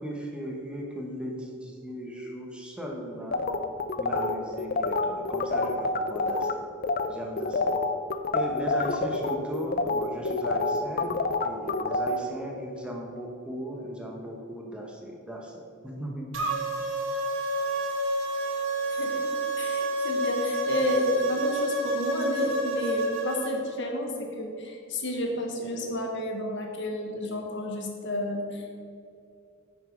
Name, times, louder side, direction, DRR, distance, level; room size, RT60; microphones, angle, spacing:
voice 1, 0.0-3.4 4.0-6.6 7.1-7.7 8.3-15.5 15.8-16.6, equal, 5° right, -1 dB, 1.1 m, -37 dB
sound 1, 3.3-6.5 6.8-7.1 7.4-12.2, left 3 dB, 45° left, 0.5 m, -27 dB
sound 2, 16.3-23.5, right 1 dB, 65° right, 1.3 m, -28 dB
voice 2, 18.9-19.3 19.6-28.8, left 1 dB, 60° left, 2 dB, 1.3 m, -31 dB
9.8 x 6.2 x 5.2 m, 2.5 s
head